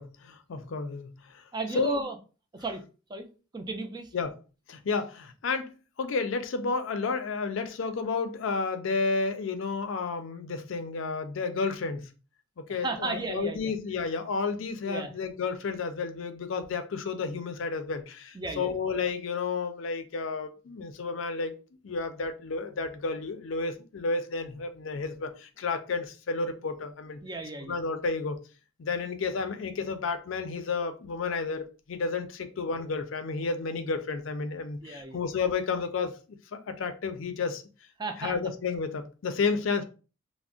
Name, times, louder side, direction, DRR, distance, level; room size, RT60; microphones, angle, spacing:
voice 1, 0.0-1.5 1.7-2.0 4.1-4.3 4.7-12.1 12.6-21.6 21.8-27.2 27.7-28.4 28.8-36.2 36.5-37.6 38.2-39.9, left 4 dB, 70° left, 8 dB, 0.4 m, -31 dB
voice 2, 1.5-2.2 2.5-2.8 3.1-3.3 3.5-4.1 12.7-13.7 14.8-15.1 18.3-18.8 27.2-27.8 34.8-35.2 38.0-38.3, right 2 dB, 20° right, 5 dB, 0.3 m, -35 dB
2.4 x 2.0 x 3.6 m, 0.34 s
head